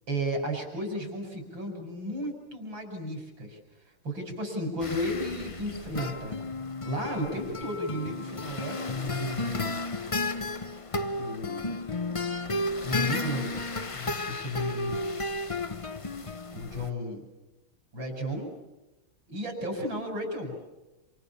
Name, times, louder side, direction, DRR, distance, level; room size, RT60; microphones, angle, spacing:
voice 1, 0.1-3.6 4.0-6.4 6.8-9.8 11.2-11.8 12.8-13.6 13.9-15.0 16.5-17.2 17.9-18.5 19.3-20.6, equal, 65° right, 4 dB, 6.6 m, -34 dB
sound 1, 4.8-16.9, left 2 dB, 45° left, 0.4 m, -33 dB
28.5 x 27.5 x 7.2 m, 1.0 s
omnidirectional pair, 2.3 m